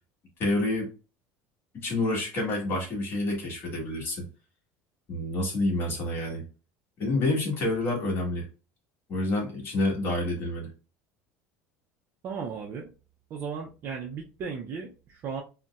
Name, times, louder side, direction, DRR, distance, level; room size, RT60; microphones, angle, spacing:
voice 1, 0.4-0.9 1.7-4.2 5.1-6.4 7.0-8.4 9.1-10.7, left 2 dB, 40° left, -1 dB, 1.4 m, -28 dB
voice 2, 12.2-12.9 13.3-15.4, right 6 dB, 40° right, 0 dB, 0.4 m, -36 dB
3.9 x 2.1 x 2.3 m, 0.33 s
cardioid pair, 140°, 6 cm